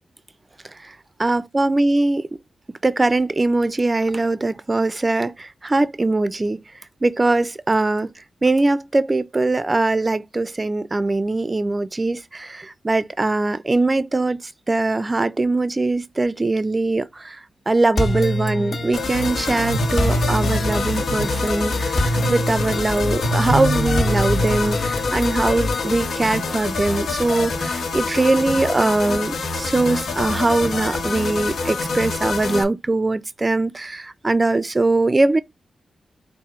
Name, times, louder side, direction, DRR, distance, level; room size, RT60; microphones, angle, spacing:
voice 1, 1.2-2.2 2.8-6.6 7.0-8.1 8.4-14.4 14.7-17.4 17.7-35.4, right 2 dB, 25° right, 0.4 m, -21 dB
sound 1, 18.0-26.0, equal, 55° left, 1.2 m, -25 dB
sound 2, 18.9-32.6, left 3 dB, 85° left, 1.2 m, -25 dB
4.2 x 2.6 x 4.8 m
wide cardioid pair, 95°, 0 cm